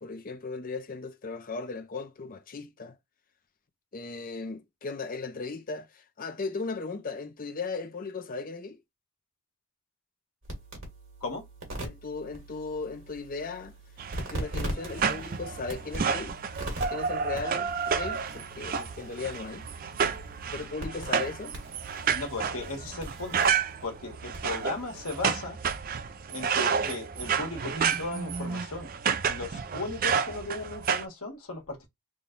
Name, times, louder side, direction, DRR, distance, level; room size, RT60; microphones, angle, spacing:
voice 1, 0.0-3.0 3.9-8.8 11.8-13.7 14.2-16.4 16.9-19.7 20.5-21.6, left 4 dB, 40° left, 0.6 m, -37 dB
sound 1, 10.4-25.3, right 1 dB, 60° right, 1.8 m, -41 dB
sound 2, 14.0-31.0, right 6 dB, 40° right, 0.4 m, -30 dB
voice 2, 22.0-23.5 23.8-25.6 26.3-28.9 29.3-31.9, left 2 dB, 80° left, 1.5 m, -36 dB
3.7 x 2.3 x 3.8 m
head